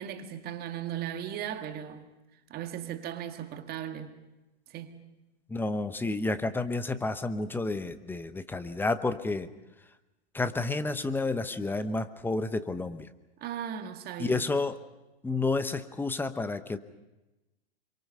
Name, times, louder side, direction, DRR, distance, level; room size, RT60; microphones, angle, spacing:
voice 1, 0.0-2.1 2.5-4.1 4.7-5.1 13.4-14.4, right 10 dB, 30° right, 1.9 m, -37 dB
voice 2, 5.5-9.5 10.3-13.1 14.2-14.8 15.2-16.8, left 3 dB, 5° left, 0.9 m, -30 dB
26.5 x 24.5 x 5.6 m
hypercardioid pair, 115°, 32 cm